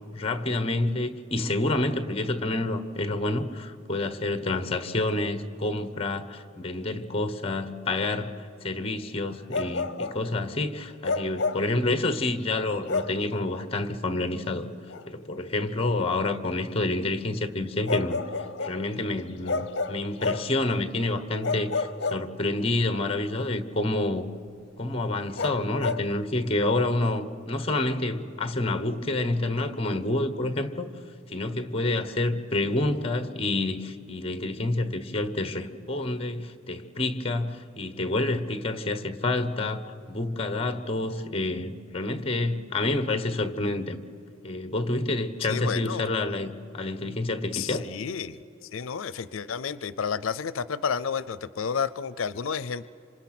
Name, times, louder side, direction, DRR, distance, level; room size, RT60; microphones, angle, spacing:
voice 1, 0.1-14.7 15.1-18.2 18.6-24.3 24.8-30.9 31.3-44.0 44.4-47.9, left 2 dB, 30° left, 10 dB, 1.1 m, -28 dB
Bark, 9.5-10.2 11.0-11.7 12.9-13.2 14.9-15.1 17.9-18.8 19.5-20.6 21.4-22.7 25.4-26.1, left 3 dB, 55° left, 0.9 m, -30 dB
voice 2, 45.4-46.0 47.5-52.9, left 6 dB, 85° left, 16 dB, 0.5 m, -31 dB
26.5 x 26.0 x 6.0 m, 2.7 s
head